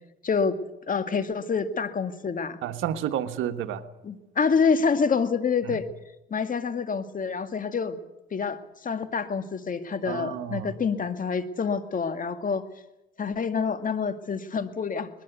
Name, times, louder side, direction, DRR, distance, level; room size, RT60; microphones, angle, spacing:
voice 1, 0.2-0.6 0.9-2.6 4.0-5.9 6.3-8.0 8.3-12.6 13.2-15.1, left 5 dB, 40° left, 8 dB, 2.2 m, -27 dB
voice 2, 2.6-3.8 5.6-5.8 10.0-10.7, right 10 dB, 90° right, 8 dB, 1.6 m, -30 dB
22.0 x 21.0 x 8.3 m, 0.90 s
cardioid pair, 90°, 20 cm